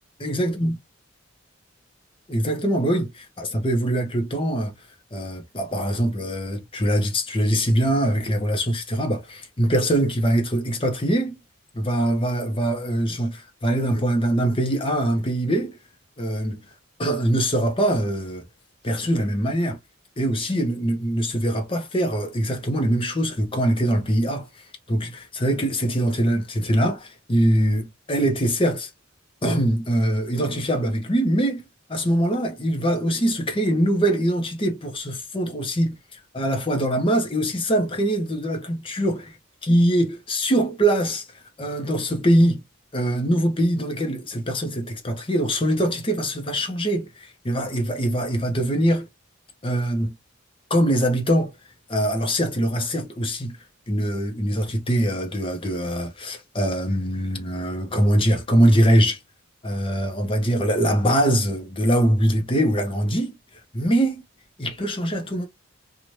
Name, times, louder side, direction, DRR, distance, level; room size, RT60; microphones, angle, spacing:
voice 1, 0.2-0.8 2.3-4.7 5.1-11.4 11.7-15.8 16.2-16.7 17.0-18.4 18.8-19.8 20.2-28.9 29.4-36.0 36.3-39.3 39.6-41.3 41.6-42.6 42.9-49.1 49.6-50.1 50.7-51.5 51.9-53.6 53.9-59.2 59.6-63.4 63.7-64.2 64.6-65.5, right 1 dB, 25° left, 0.8 m, -23 dB
3.1 x 2.4 x 2.7 m
head